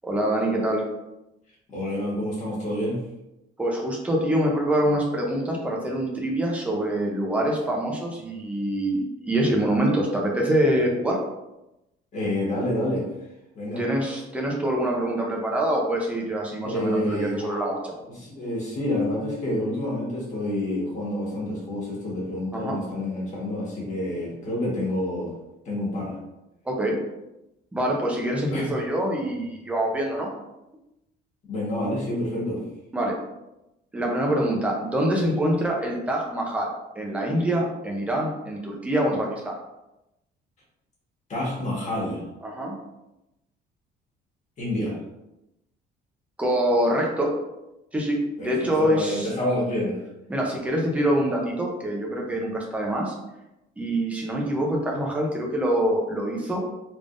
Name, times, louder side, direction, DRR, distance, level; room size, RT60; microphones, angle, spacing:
voice 1, 0.0-0.8 3.6-11.2 13.8-17.9 22.5-22.8 26.7-27.0 27.7-30.3 32.9-33.2 33.9-39.6 42.4-42.8 46.4-47.4 47.9-49.3 50.3-53.1 53.8-56.6, right 1 dB, 5° right, -1 dB, 0.6 m, -25 dB
voice 2, 1.7-3.0 12.1-13.0 13.5-13.8 16.6-17.6 18.1-25.3 25.6-26.2 28.5-28.7 31.4-32.6 41.3-42.2 44.6-45.0 48.4-50.0, left 1 dB, 40° left, -5 dB, 1.5 m, -28 dB
3.5 x 3.3 x 2.5 m, 0.92 s
cardioid pair, 165°, 20 cm